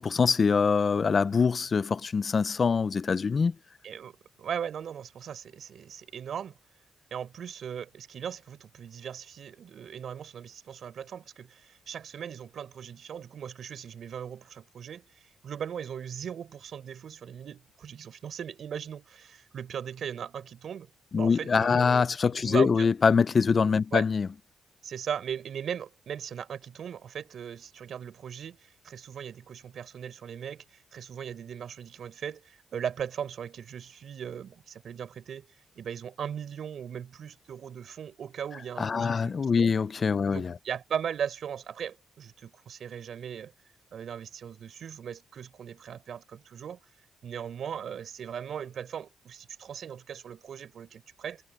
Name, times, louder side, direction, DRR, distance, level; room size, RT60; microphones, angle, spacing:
voice 1, 0.0-3.5 21.1-24.3 38.8-40.5, left 5 dB, 35° left, 0.5 m, -24 dB
voice 2, 4.4-6.6 7.1-22.9 23.9-24.1 24.8-35.5 35.7-39.8 40.3-43.5 43.9-46.8 47.2-51.4, right 8 dB, 55° right, 6.3 m, -38 dB
cardioid pair, 135°, 0 cm